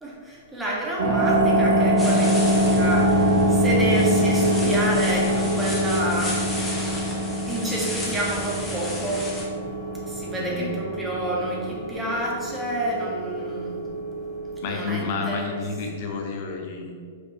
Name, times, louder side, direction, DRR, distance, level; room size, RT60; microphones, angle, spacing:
voice 1, 0.0-7.0 7.5-9.3 10.0-13.9 14.7-15.5, right 1 dB, 10° right, -4 dB, 1.6 m, -29 dB
sound 1, 0.9-6.4, left 1 dB, 80° left, 0.6 m, -38 dB
sound 2, 1.0-16.0, equal, 55° right, 1.4 m, -24 dB
sound 3, 2.0-9.4, left 1 dB, 10° left, 1.3 m, -34 dB
voice 2, 10.3-10.7 14.6-16.9, left 4 dB, 45° left, 1 dB, 0.7 m, -30 dB
5.3 x 4.7 x 4.4 m, 2.1 s
figure-of-eight pair, 105°, 0 cm